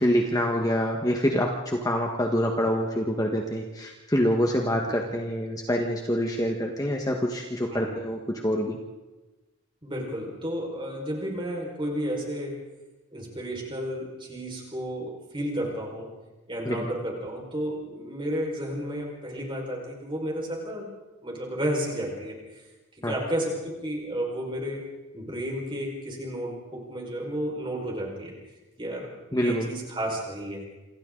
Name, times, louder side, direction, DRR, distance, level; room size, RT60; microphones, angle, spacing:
voice 1, 0.0-8.8 16.6-16.9 23.0-23.2 29.3-29.7, equal, 15° left, 1 dB, 1.4 m, -26 dB
voice 2, 9.8-12.5 13.1-16.1 16.5-20.9 21.2-22.6 23.1-28.3 28.8-30.6, equal, 25° right, -1 dB, 5.1 m, -32 dB
27.5 x 27.5 x 3.9 m, 1.1 s
head